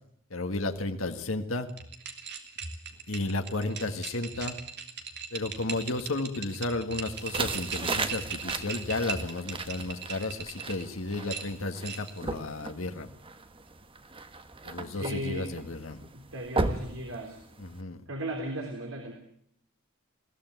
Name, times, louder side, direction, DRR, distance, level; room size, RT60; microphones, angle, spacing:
voice 1, 0.3-1.7 3.1-4.5 5.3-13.1 14.6-16.0 17.6-18.0, left 2 dB, 75° left, 6 dB, 1.7 m, -33 dB
sound 1, 1.7-10.8 11.3-12.2, right 6 dB, 55° right, 2.9 m, -38 dB
sound 2, 7.1-17.8, right 3 dB, 25° right, 1.3 m, -37 dB
voice 2, 14.9-15.5 16.1-17.4 18.1-19.1, right 1 dB, 85° right, 2 dB, 3.5 m, -36 dB
21.5 x 16.0 x 9.4 m, 0.70 s
head